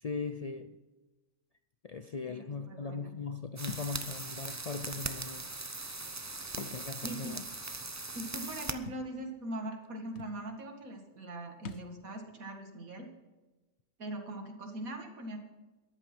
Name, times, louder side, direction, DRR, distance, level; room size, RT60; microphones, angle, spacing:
voice 1, 0.0-0.8 1.8-5.5 6.6-7.4, left 4 dB, 85° left, 9 dB, 0.3 m, -39 dB
voice 2, 2.3-3.2 7.0-7.4 8.1-13.1 14.0-15.4, right 1 dB, 80° right, 3 dB, 2.5 m, -41 dB
sound 1, 3.6-8.7, right 3 dB, 20° right, 0.5 m, -40 dB
Thump thud, 3.7-3.9 5.0-5.1 6.4-6.8 7.2-7.3 8.9-9.1 9.8-9.9 10.2-10.4 11.6-11.9, left 5 dB, 55° left, 1.0 m, -44 dB
13.5 x 11.0 x 6.0 m, 1.2 s
omnidirectional pair, 1.5 m